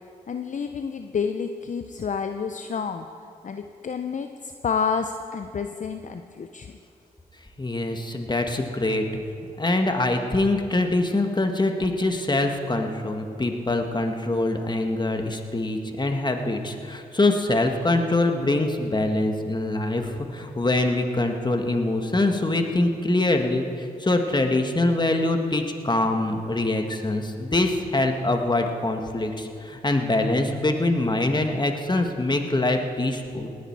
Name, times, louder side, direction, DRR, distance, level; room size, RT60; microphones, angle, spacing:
voice 1, 0.3-3.1 3.4-6.7, left 6 dB, 50° left, 7 dB, 0.7 m, -29 dB
voice 2, 7.6-9.1 9.6-33.5, left 2 dB, 25° left, 5 dB, 1.8 m, -24 dB
19.0 x 10.0 x 4.8 m, 2.4 s
supercardioid pair, 40°, 16 cm